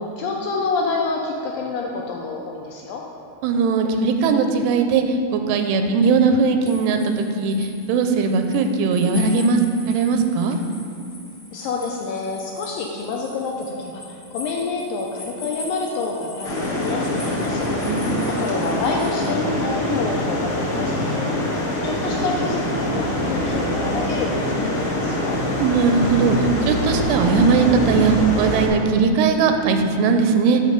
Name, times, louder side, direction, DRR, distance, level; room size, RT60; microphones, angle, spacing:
voice 1, 0.0-3.0 11.5-17.9 18.3-21.6 21.8-25.4, left 4 dB, 80° left, 0 dB, 2.1 m, -28 dB
voice 2, 3.4-9.6 9.9-10.6 17.9-18.3 21.4-21.9 25.6-30.6, right 4 dB, 85° right, 6 dB, 2.6 m, -19 dB
sound 1, 6.7-19.3, left 2 dB, 25° left, 1.5 m, -41 dB
sound 2, 16.4-28.7, left 1 dB, 60° left, 1.5 m, -24 dB
8.4 x 6.0 x 5.2 m, 2.4 s
omnidirectional pair, 4.6 m